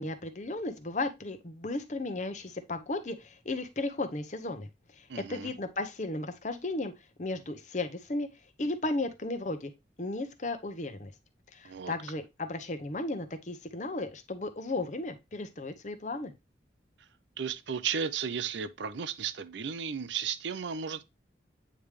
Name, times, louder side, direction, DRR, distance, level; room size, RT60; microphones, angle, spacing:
voice 1, 0.0-6.9 7.2-8.3 8.6-9.7 10.0-11.1 11.5-16.3, left 2 dB, 40° left, 0.8 m, -35 dB
voice 2, 5.1-5.5 11.6-11.9 17.4-21.0, right 7 dB, 80° right, 0.6 m, -34 dB
8.7 x 3.4 x 3.2 m
head